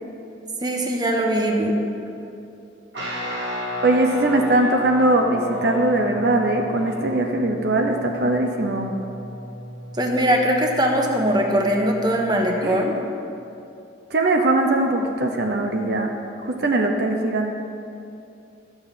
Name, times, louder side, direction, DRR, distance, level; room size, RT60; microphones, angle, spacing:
voice 1, 0.6-1.8 9.9-12.9, right 1 dB, 25° right, 1 dB, 1.1 m, -21 dB
Guitar, 2.9-12.8, equal, 80° right, 1.9 m, -34 dB
voice 2, 3.8-8.9 12.6-12.8 14.1-16.1 16.4-17.5, right 2 dB, 65° right, 3 dB, 0.8 m, -21 dB
12.5 x 7.2 x 5.6 m, 2.7 s
head